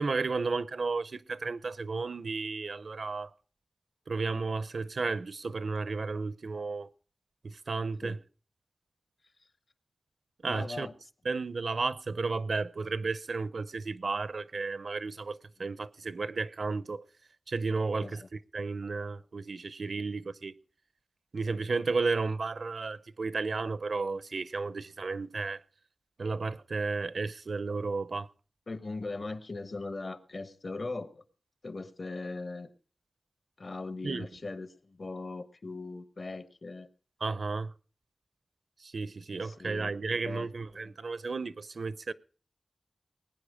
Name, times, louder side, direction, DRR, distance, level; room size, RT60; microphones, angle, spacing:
voice 1, 0.0-3.3 4.1-6.9 7.4-8.2 10.4-10.9 11.3-17.0 17.5-20.5 21.3-25.6 26.2-28.3 34.0-34.3 37.2-37.7 38.8-42.1, right 4 dB, 70° right, 0.6 m, -33 dB
voice 2, 10.4-10.9 18.0-18.3 28.7-31.2 31.6-32.7 33.6-36.9 39.4-39.9 40.2-41.0, left 3 dB, 55° left, 1.1 m, -40 dB
20.0 x 9.4 x 4.9 m
wide cardioid pair, 95°, 0 cm